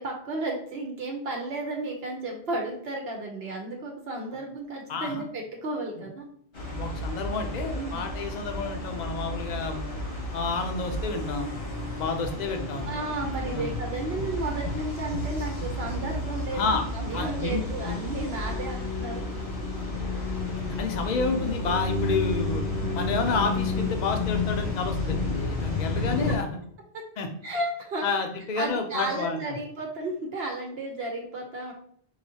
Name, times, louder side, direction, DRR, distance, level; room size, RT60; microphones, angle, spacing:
voice 1, 0.0-6.3 7.7-8.0 12.9-19.2 25.8-25.9 26.9-27.0 27.4-28.1 28.6-31.7, right 2 dB, 70° right, 1 dB, 0.9 m, -33 dB
voice 2, 4.9-5.2 6.7-9.8 10.3-11.5 12.0-12.9 13.5-13.7 16.5-16.8 17.1-18.0 20.8-22.6 22.9-26.5 27.2-27.3 28.0-29.6, left 4 dB, 50° left, 5 dB, 0.6 m, -30 dB
sound 1, 6.5-26.4, left 2 dB, 85° left, 1.7 m, -31 dB
4.8 x 2.6 x 2.8 m, 0.63 s
omnidirectional pair, 1.1 m